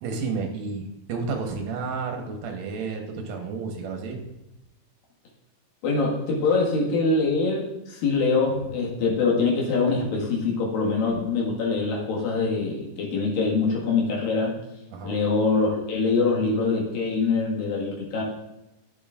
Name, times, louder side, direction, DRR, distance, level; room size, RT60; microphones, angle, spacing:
voice 1, 0.0-4.2 14.9-15.2, right 4 dB, 65° right, 3 dB, 2.0 m, -31 dB
voice 2, 5.8-14.5 15.0-18.2, left 4 dB, 85° left, -3 dB, 3.5 m, -24 dB
11.0 x 7.7 x 2.4 m, 0.93 s
omnidirectional pair, 3.9 m